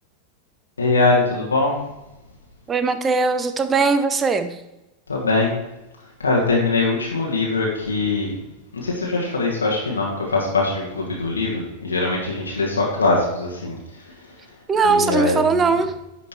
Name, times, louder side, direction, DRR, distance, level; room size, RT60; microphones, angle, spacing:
voice 1, 0.8-1.8 5.1-5.5 6.2-8.3 8.7-13.8 14.8-15.6, left 3 dB, 75° left, -3 dB, 1.7 m, -22 dB
voice 2, 2.7-4.6 14.7-15.9, right 4 dB, 20° right, 9 dB, 0.8 m, -20 dB
10.5 x 5.1 x 4.5 m, 0.97 s
figure-of-eight pair, 90°, 0 cm